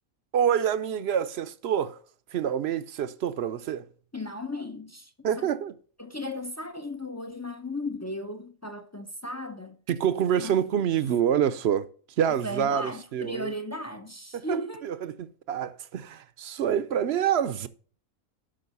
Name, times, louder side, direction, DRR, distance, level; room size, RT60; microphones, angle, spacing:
voice 1, 0.3-2.0 2.3-3.9 5.2-5.7 9.9-11.9 12.2-13.5 14.3-17.7, right 9 dB, 60° right, 0.8 m, -27 dB
voice 2, 4.1-5.5 6.0-9.8 10.4-10.6 12.4-14.9, left 1 dB, 20° left, 0.4 m, -36 dB
11.5 x 5.3 x 5.4 m
omnidirectional pair, 1.5 m